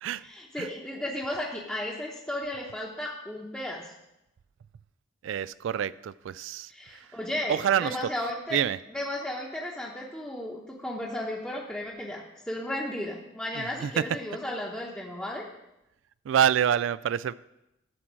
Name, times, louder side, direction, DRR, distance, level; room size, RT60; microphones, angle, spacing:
voice 1, 0.2-3.9 6.7-8.6 8.9-15.4, left 1 dB, 5° left, 0.9 m, -34 dB
voice 2, 5.2-6.7 7.5-8.0 8.5-8.8 13.6-14.0 16.3-17.3, right 9 dB, 85° right, 0.3 m, -26 dB
12.5 x 4.5 x 7.4 m
head